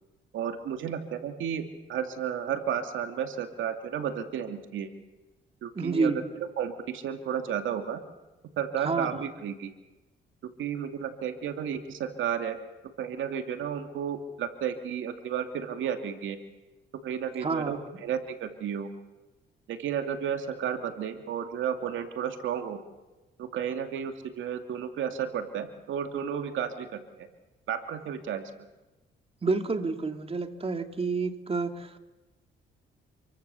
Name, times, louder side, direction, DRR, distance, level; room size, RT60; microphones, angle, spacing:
voice 1, 0.3-1.6 1.9-4.9 5.6-6.1 6.4-8.0 8.6-9.7 10.6-12.6 13.0-16.4 17.0-18.9 19.7-22.8 23.4-27.3 27.7-28.5, right 8 dB, 75° right, 6 dB, 2.6 m, -32 dB
voice 2, 5.8-6.2 8.8-9.2 17.4-17.9 29.4-32.0, right 4 dB, 30° right, 6 dB, 2.5 m, -29 dB
28.0 x 23.5 x 7.1 m, 1.1 s
cardioid pair, 90°, 20 cm